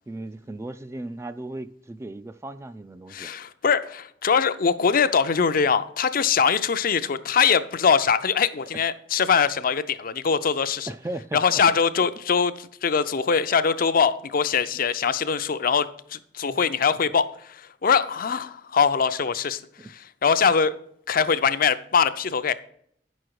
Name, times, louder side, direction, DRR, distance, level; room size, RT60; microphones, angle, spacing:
voice 1, 0.1-3.3 10.9-11.8 16.4-16.6 19.8-19.9, right 2 dB, 15° right, 0.3 m, -36 dB
voice 2, 3.1-10.9 11.3-20.8 21.1-22.5, left 6 dB, 50° left, 0.5 m, -22 dB
9.3 x 6.3 x 4.7 m
head